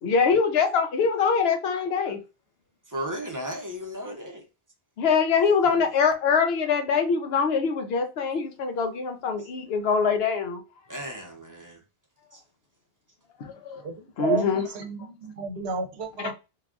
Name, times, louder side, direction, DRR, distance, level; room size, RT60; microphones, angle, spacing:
voice 1, 0.0-2.2 5.0-10.6 13.4-13.8 14.2-14.7 16.2-16.3, left 5 dB, 75° left, 0.8 m, -24 dB
voice 2, 2.9-4.4 5.6-5.9 10.9-11.8 12.3-12.4, equal, 20° right, 0.6 m, -35 dB
voice 3, 13.8-16.3, right 5 dB, 80° right, 0.9 m, -31 dB
3.2 x 2.3 x 2.4 m
omnidirectional pair, 1.1 m